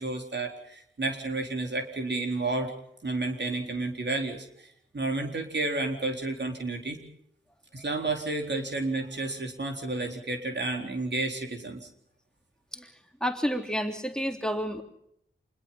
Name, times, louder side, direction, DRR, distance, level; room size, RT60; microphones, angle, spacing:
voice 1, 0.0-2.7 3.0-7.0 7.7-11.9, right 2 dB, 60° right, 3 dB, 4.0 m, -31 dB
voice 2, 13.2-14.8, equal, 5° left, 4 dB, 3.3 m, -30 dB
27.0 x 21.0 x 5.8 m, 0.74 s
cardioid pair, 40°, 20 cm